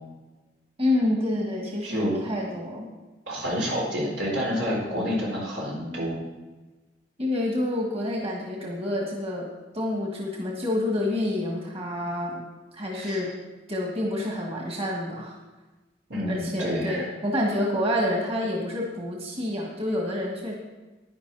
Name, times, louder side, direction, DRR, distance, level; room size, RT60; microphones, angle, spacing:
voice 1, 0.8-2.9 7.2-9.5 9.7-12.4 12.7-13.3 13.7-15.3 16.3-20.5, left 1 dB, 35° right, -1 dB, 1.8 m, -28 dB
voice 2, 1.8-2.2 3.3-6.2 13.0-13.2 16.1-17.1, equal, 90° right, -3 dB, 4.3 m, -28 dB
11.0 x 10.5 x 4.1 m, 1.2 s
head